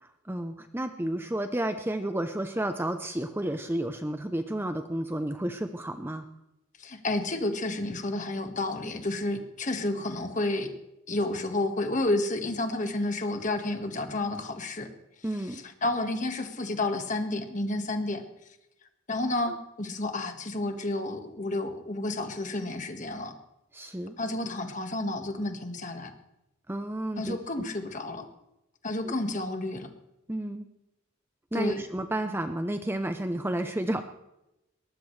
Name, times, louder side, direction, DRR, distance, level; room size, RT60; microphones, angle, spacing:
voice 1, 0.0-6.2 15.2-15.6 23.7-24.2 26.7-27.4 29.0-29.1 30.3-30.7 31.5-34.0, right 1 dB, 10° right, 7 dB, 0.6 m, -31 dB
voice 2, 6.8-10.7 11.1-14.9 15.2-18.2 19.1-23.4 24.2-26.1 27.2-28.3 28.8-29.9 31.5-31.8, left 2 dB, 35° left, 6 dB, 1.6 m, -31 dB
21.5 x 19.5 x 3.3 m, 0.91 s
head